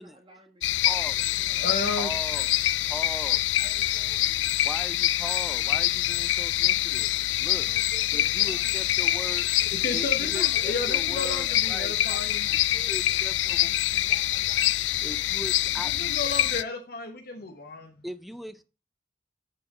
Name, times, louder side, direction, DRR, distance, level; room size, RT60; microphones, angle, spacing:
voice 1, 0.0-1.9 3.2-4.5 7.5-9.7 10.3-10.8 11.1-11.7 12.1-13.3 13.6-15.2, right 2 dB, 30° right, 1.8 m, -52 dB
sound 1, 0.6-16.6, left 14 dB, 85° left, 0.3 m, -25 dB
voice 2, 0.8-1.2 2.0-2.5 2.9-3.4 4.6-7.7 8.1-9.5 9.9-11.9 12.9-13.7 15.0-16.1 18.0-18.6, equal, ahead, 0.4 m, -39 dB
voice 3, 1.6-2.1 9.7-12.5 15.8-18.0, left 3 dB, 55° left, 0.9 m, -33 dB
7.5 x 4.3 x 4.8 m
head